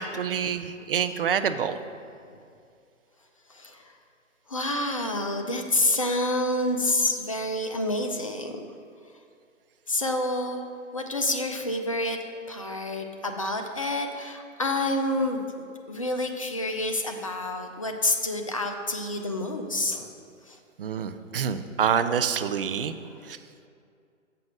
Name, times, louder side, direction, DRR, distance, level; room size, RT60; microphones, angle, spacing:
voice 1, 0.0-1.8 20.8-22.9 23.3-23.4, right 7 dB, 45° right, 10 dB, 0.4 m, -27 dB
voice 2, 3.5-3.9 4.5-8.6 9.9-10.6 10.9-12.2 12.5-20.1 20.5-20.6 23.2-23.3, left 2 dB, 30° left, 4 dB, 0.4 m, -28 dB
6.7 x 5.2 x 6.0 m, 2.3 s
figure-of-eight pair, 135°, 39 cm